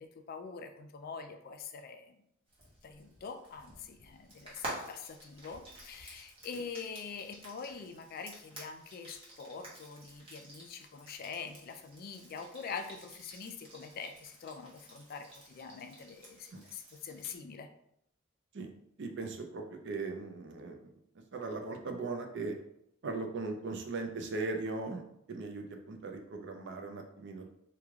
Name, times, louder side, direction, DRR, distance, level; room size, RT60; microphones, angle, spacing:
voice 1, 0.0-2.2 2.8-17.7, left 5 dB, 45° left, 7 dB, 0.3 m, -44 dB
Frying (food), 2.5-17.4, right 1 dB, 25° right, 1.1 m, -50 dB
voice 2, 19.0-20.8 21.3-22.6 23.0-25.0 25.3-27.5, right 3 dB, 60° right, 4 dB, 0.5 m, -38 dB
3.2 x 2.3 x 3.5 m, 0.75 s
head